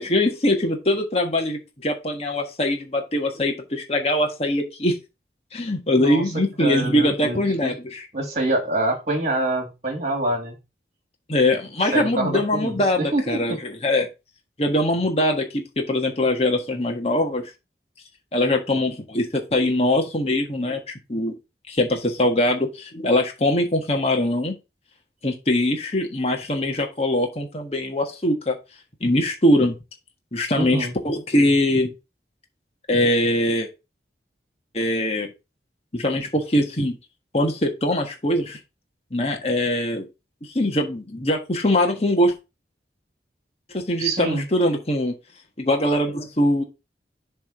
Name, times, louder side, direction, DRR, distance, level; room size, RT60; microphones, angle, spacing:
voice 1, 0.0-5.0 5.5-8.1 11.3-14.1 14.6-17.5 18.3-20.8 21.1-21.3 21.7-24.5 25.2-28.6 29.0-29.7 30.3-31.9 32.9-33.7 34.7-35.3 35.9-37.0 37.3-38.6 39.1-40.1 40.5-42.3 43.7-45.1 45.6-46.6, left 1 dB, 35° left, 2 dB, 1.5 m, -22 dB
voice 2, 6.6-7.7 8.1-10.6 11.9-13.6 30.5-30.9 44.0-44.5, right 2 dB, 40° right, 3 dB, 2.0 m, -26 dB
7.2 x 3.6 x 5.9 m, 0.26 s
head